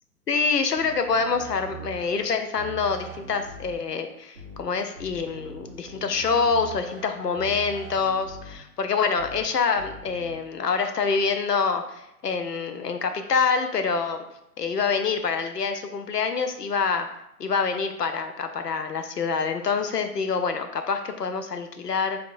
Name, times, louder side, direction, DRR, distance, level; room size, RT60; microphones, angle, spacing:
voice 1, 0.3-14.2 14.6-17.1 17.4-22.2, left 5 dB, 75° left, 7 dB, 0.7 m, -26 dB
sound 1, 0.8-2.2 2.5-3.8 4.3-4.6 4.9-7.0 7.3-8.6 9.1-9.4 9.7-10.3, right 4 dB, 40° right, 0.7 m, -42 dB
4.6 x 3.7 x 2.5 m, 0.81 s
figure-of-eight pair, 125°, 48 cm